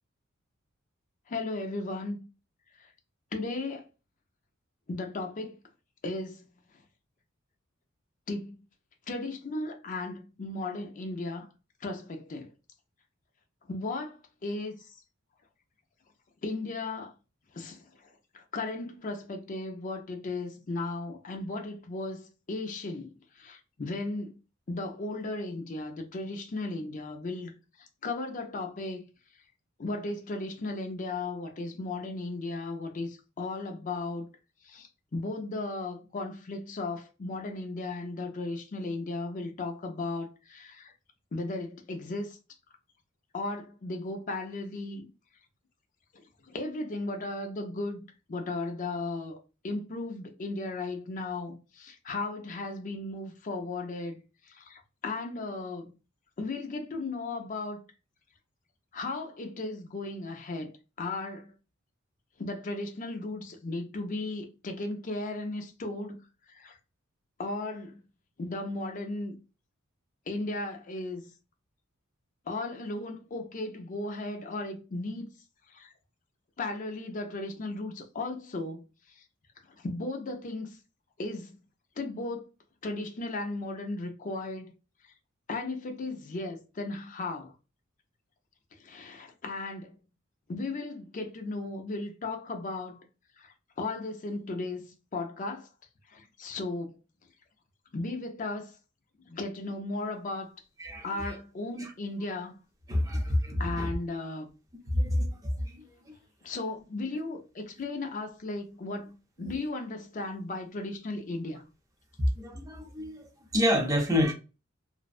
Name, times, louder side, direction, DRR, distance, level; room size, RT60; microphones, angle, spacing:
voice 1, 1.3-2.3 2.8-2.9 3.3-3.8 4.9-5.6 6.0-6.5 8.3-8.6 9.1-11.5 11.8-12.5 13.7-15.0 16.4-17.1 17.5-24.3 24.7-29.1 29.8-34.3 34.6-40.9 41.3-42.4 43.3-45.1 46.1-48.0 48.3-49.4 49.6-55.9 56.4-57.8 58.9-61.5 62.4-66.2 66.5-66.8 67.4-68.0 68.4-69.4 70.3-71.3 72.5-75.3 75.7-75.9 76.6-78.8 79.2-79.3 79.7-80.8 81.2-81.6 82.0-82.4 82.8-84.7 85.5-87.5 88.8-90.0 90.5-93.0 93.4-95.7 96.1-96.9 97.9-98.8 99.3-100.5 101.0-102.6 103.6-104.5 106.4-111.6, left 2 dB, 40° left, 0.5 m, -36 dB
voice 2, 100.8-101.3 101.8-101.9 102.9-103.9 104.9-106.2 107.8-107.9 109.4-109.5 112.3-114.3, left 1 dB, 15° right, 0.6 m, -29 dB
2.5 x 2.1 x 2.4 m
head